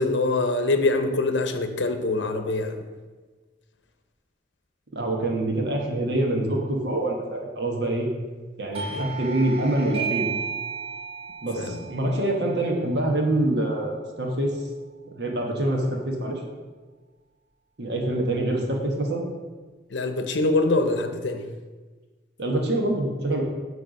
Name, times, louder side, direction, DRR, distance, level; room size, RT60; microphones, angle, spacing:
voice 1, 0.0-2.8 8.9-9.1 11.6-11.8 19.9-21.4, left 2 dB, 80° left, 8 dB, 0.7 m, -24 dB
voice 2, 4.9-8.1 8.6-10.3 11.4-14.5 15.2-16.4 17.8-19.2 22.4-23.4, right 1 dB, 70° right, 1 dB, 1.2 m, -25 dB
Doorbell, 8.7-14.0, right 6 dB, 30° right, 1.2 m, -34 dB
8.9 x 3.3 x 6.4 m, 1.4 s
head